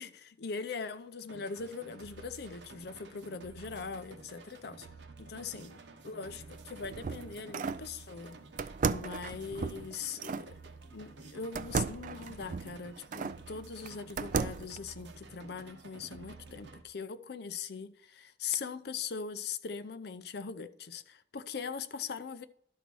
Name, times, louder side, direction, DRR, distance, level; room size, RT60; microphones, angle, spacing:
voice 1, 0.0-4.9 5.2-5.8 6.0-8.4 8.8-10.5 10.9-22.5, left 5 dB, 60° left, 0.5 m, -41 dB
sound 1, 1.3-16.8, right 3 dB, 75° right, 0.9 m, -51 dB
sound 2, 6.5-7.9 8.6-10.5 11.6-13.4 13.9-14.8, right 5 dB, 45° right, 0.3 m, -35 dB
11.5 x 4.1 x 6.1 m
head